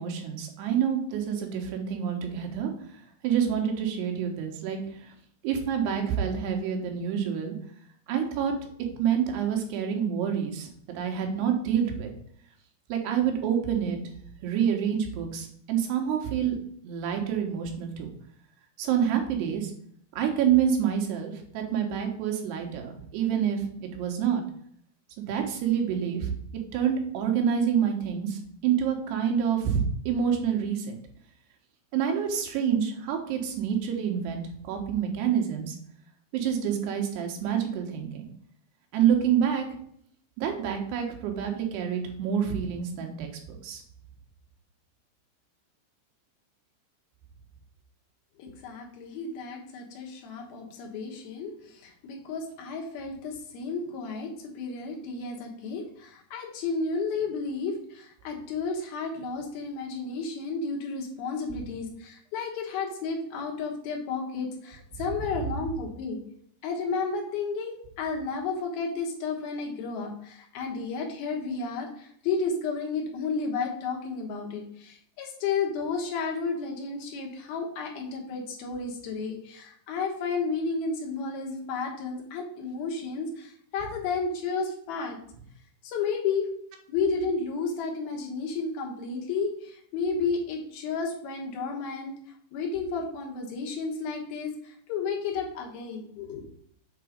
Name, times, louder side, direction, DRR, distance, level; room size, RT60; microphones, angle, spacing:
voice 1, 0.0-5.1 5.4-7.6 8.1-8.5 9.0-12.1 12.9-14.0 14.4-16.6 16.8-18.1 18.8-19.7 20.1-24.4 25.2-26.3 26.7-31.0 31.9-35.8 36.3-38.3 38.9-39.7 40.4-43.8, right 8 dB, 85° right, 3 dB, 3.3 m, -27 dB
voice 2, 48.4-66.2 66.6-85.2 85.8-86.5 86.9-92.1 92.5-96.4, left 4 dB, 75° left, 0 dB, 3.0 m, -32 dB
7.4 x 4.0 x 5.0 m, 0.65 s
omnidirectional pair, 4.6 m